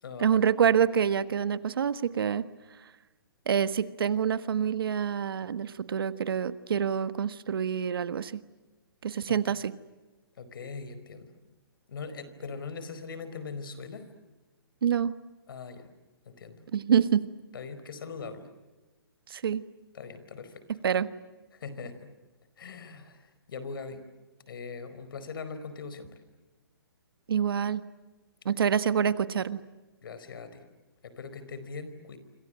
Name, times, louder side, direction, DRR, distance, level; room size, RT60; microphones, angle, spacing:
voice 1, 0.2-2.4 3.5-8.3 9.0-9.7 14.8-15.1 16.7-17.2 19.3-19.6 20.8-21.1 27.3-27.8 28.4-29.6, right 8 dB, 70° right, 13 dB, 1.4 m, -26 dB
voice 2, 10.4-11.3 11.9-14.1 15.5-15.9 16.2-16.7 17.5-18.5 19.9-20.6 21.5-22.1 22.6-24.0 24.5-26.2 30.0-30.7 31.0-32.2, left 5 dB, 65° left, 12 dB, 4.6 m, -41 dB
28.0 x 26.0 x 7.6 m, 1.2 s
hypercardioid pair, 150°, 13 cm